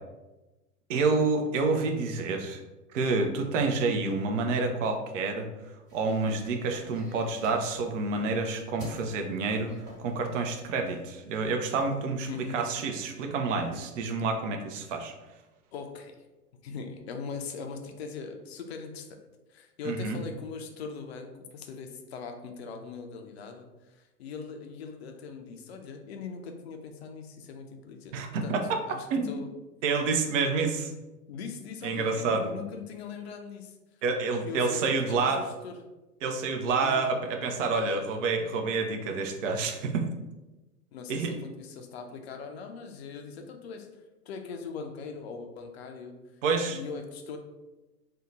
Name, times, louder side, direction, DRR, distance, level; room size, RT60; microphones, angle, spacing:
voice 1, 0.9-2.6 2.9-5.5 5.9-9.7 10.0-15.1 19.8-20.2 28.1-28.6 29.1-29.3 29.8-30.9 31.8-32.5 34.0-35.4 36.2-40.0 41.1-41.3 46.4-46.8, right 4 dB, 50° right, 4 dB, 0.6 m, -28 dB
sound 1, 5.9-11.0, right 1 dB, 85° right, 1.3 m, -49 dB
voice 2, 12.3-12.6 15.7-16.1 16.6-19.2 19.5-28.6 28.9-29.5 31.3-33.8 34.4-35.8 36.8-37.0 40.9-43.9 44.3-46.1 46.7-47.4, left 5 dB, 45° left, 4 dB, 0.4 m, -40 dB
2.7 x 2.1 x 3.8 m, 1.1 s
figure-of-eight pair, 105°, 48 cm